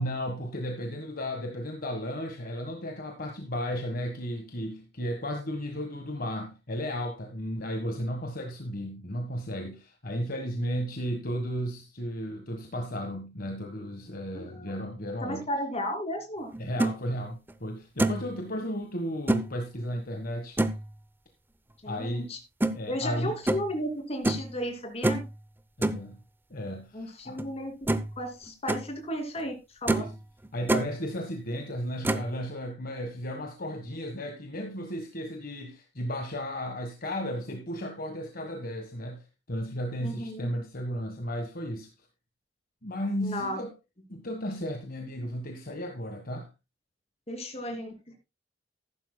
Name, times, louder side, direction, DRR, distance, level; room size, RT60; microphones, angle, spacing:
voice 1, 0.0-15.4 16.6-20.6 21.9-22.3 22.7-23.3 25.8-26.2 26.5-27.4 29.9-30.1 30.5-39.2 39.5-41.9 42.8-43.7 44.1-46.5, equal, 55° left, 1.5 m, -34 dB
voice 2, 14.3-14.8 15.2-16.5 21.8-22.4 22.9-25.2 26.9-27.9 28.2-30.1 40.0-40.5 43.2-43.6 47.3-48.2, equal, 35° left, 2.8 m, -34 dB
sound 1, 16.5-16.9 17.5-17.6 18.0-18.3 19.3-19.5 20.6-20.9 22.6-22.8 23.5-23.7 24.2-24.5 25.0-25.3 25.8-26.0 27.4-27.5 27.9-28.2 28.5-28.8 29.4-29.5 29.9-30.1 30.4-30.9 32.0-32.3, right 1 dB, 10° right, 0.6 m, -26 dB
14.0 x 11.5 x 2.2 m
head